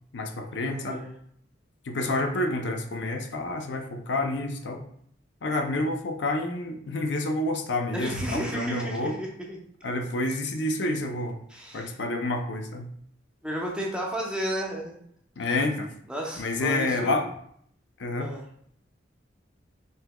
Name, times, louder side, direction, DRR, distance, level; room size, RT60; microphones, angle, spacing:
voice 1, 0.1-1.0 1.9-4.8 5.4-9.2 9.8-11.4 11.7-12.9 15.4-15.9 16.4-17.3 18.0-18.3, left 2 dB, 65° left, 4 dB, 0.5 m, -28 dB
voice 2, 0.7-1.1 7.9-9.6 11.5-11.9 13.4-15.0 15.4-15.5 16.1-17.2 18.2-18.4, right 1 dB, 5° right, -2 dB, 0.7 m, -33 dB
5.4 x 2.9 x 2.3 m, 0.65 s
head